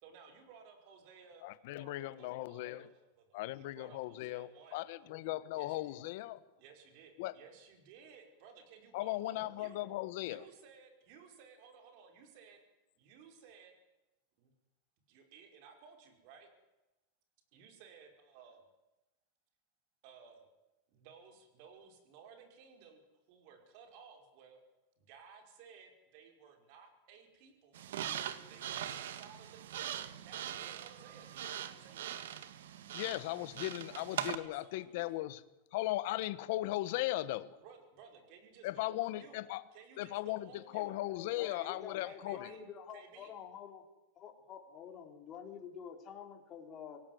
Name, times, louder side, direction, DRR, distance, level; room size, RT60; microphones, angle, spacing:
voice 1, 0.0-5.1 5.6-6.0 6.6-9.8 10.2-12.6 13.0-13.7 14.4-14.5 15.1-16.5 17.5-18.7 20.0-20.5 20.9-23.0 23.3-24.6 25.0-27.8 28.5-32.2 33.8-35.2 36.9-37.3 37.6-39.4 39.7-41.0 41.5-41.8 42.0-42.6 42.9-43.3, right 6 dB, 45° right, 6 dB, 5.2 m, -58 dB
voice 2, 1.4-2.8 3.3-6.4 7.2-7.3 8.9-10.5 32.9-35.4 35.7-37.4 38.6-39.6 40.0-42.5, left 17 dB, 55° left, 14 dB, 1.3 m, -37 dB
sound 1, 27.7-34.4, right 10 dB, 90° right, 1.8 m, -41 dB
voice 3, 41.1-43.8 44.2-47.0, left 7 dB, 25° left, 4 dB, 3.6 m, -48 dB
24.5 x 17.5 x 9.5 m, 1.0 s
supercardioid pair, 160°, 0 cm